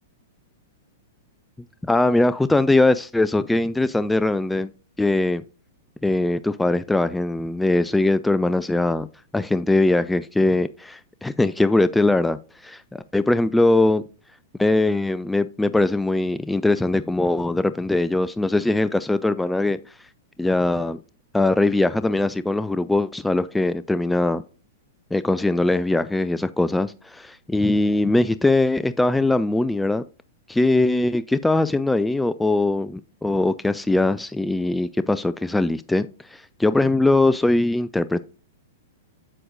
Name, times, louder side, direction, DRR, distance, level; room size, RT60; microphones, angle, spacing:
voice 1, 1.8-4.7 5.0-5.4 6.0-9.1 9.3-14.0 14.6-19.8 20.4-21.0 21.3-24.4 25.1-30.0 30.5-38.2, left 2 dB, 5° left, 0.3 m, -21 dB
7.7 x 7.6 x 2.5 m
hypercardioid pair, 105°, 0 cm